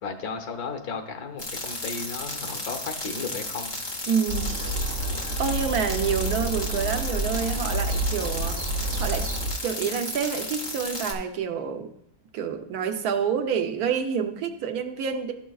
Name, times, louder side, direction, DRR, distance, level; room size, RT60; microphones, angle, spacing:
voice 1, 0.0-3.7 4.6-4.8, left 5 dB, 90° left, 5 dB, 1.4 m, -34 dB
sound 1, 1.4-11.1, left 2 dB, 25° left, 0.6 m, -34 dB
voice 2, 4.1-4.5 5.4-9.3 9.6-11.9 12.3-15.3, right 7 dB, 85° right, 6 dB, 1.2 m, -28 dB
sound 2, 4.3-9.5, right 2 dB, 60° right, 1.2 m, -29 dB
12.0 x 6.1 x 2.3 m, 0.74 s
omnidirectional pair, 1.6 m